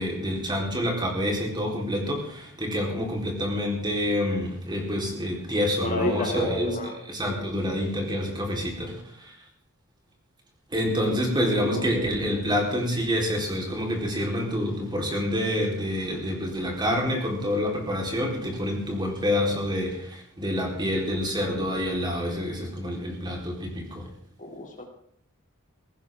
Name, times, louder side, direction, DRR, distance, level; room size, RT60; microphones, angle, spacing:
voice 1, 0.0-9.3 10.7-24.1, equal, 20° right, 0 dB, 4.2 m, -27 dB
voice 2, 5.8-6.9 11.0-11.2 11.4-11.8 24.4-24.8, left 2 dB, 40° left, 2 dB, 3.1 m, -31 dB
18.5 x 17.0 x 3.8 m, 0.68 s
head